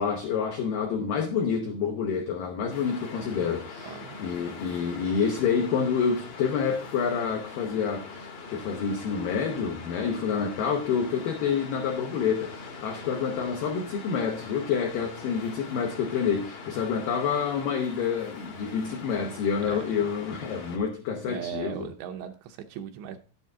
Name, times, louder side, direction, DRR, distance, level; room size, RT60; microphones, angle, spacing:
voice 1, 0.0-21.9, left 6 dB, 80° left, 2.0 m, -28 dB
Waves surf, 2.7-20.8, left 4 dB, 60° left, 1.5 m, -42 dB
voice 2, 3.8-4.2 19.6-19.8 21.3-23.2, right 9 dB, 80° right, 2.7 m, -38 dB
11.0 x 8.6 x 3.6 m
omnidirectional pair, 5.5 m